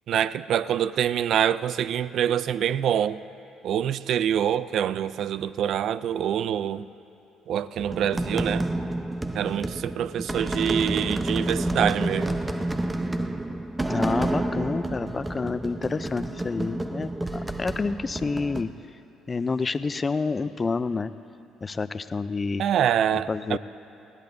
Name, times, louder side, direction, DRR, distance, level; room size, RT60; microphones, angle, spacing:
voice 1, 0.1-3.2 3.6-6.9 7.5-8.7 9.3-12.4 22.6-23.6, right 9 dB, 65° right, 0.4 m, -25 dB
sound 1, 7.8-18.6, right 1 dB, 15° right, 0.8 m, -29 dB
voice 2, 13.9-17.1 17.6-18.7 19.3-21.1 21.6-22.6 23.1-23.6, left 4 dB, 30° left, 0.5 m, -28 dB
20.5 x 17.0 x 2.7 m
supercardioid pair, 70°, 0 cm